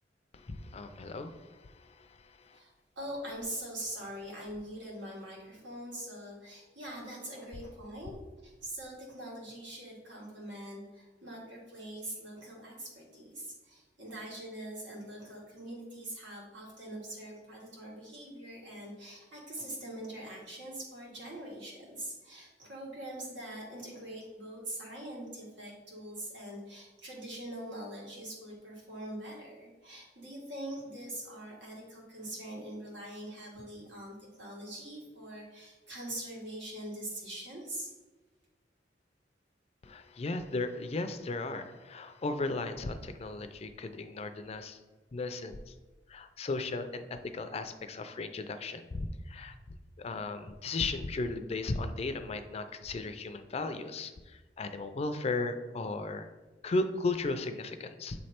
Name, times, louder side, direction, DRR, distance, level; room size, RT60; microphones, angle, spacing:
voice 1, 0.3-2.6 39.8-44.8 45.1-45.7 46.1-49.5 50.0-56.3 56.6-58.2, left 3 dB, 35° left, 9 dB, 0.4 m, -36 dB
voice 2, 2.5-37.9, right 1 dB, 90° right, -3 dB, 1.9 m, -43 dB
7.1 x 3.2 x 4.3 m, 1.2 s
head